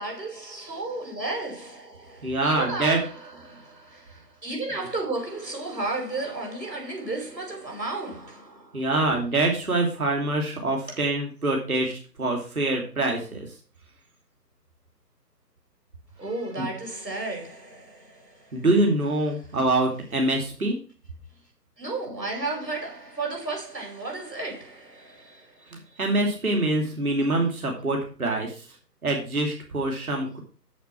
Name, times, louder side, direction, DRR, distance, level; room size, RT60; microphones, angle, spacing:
voice 1, 0.0-8.8 16.2-18.7 21.8-26.0, right 2 dB, 80° right, 5.7 m, -33 dB
voice 2, 2.2-3.0 8.7-13.5 16.6-16.7 18.5-20.8 25.7-28.6 29.0-30.4, right 2 dB, 60° right, 2.9 m, -25 dB
7.5 x 7.1 x 6.1 m
figure-of-eight pair, 150°, 49 cm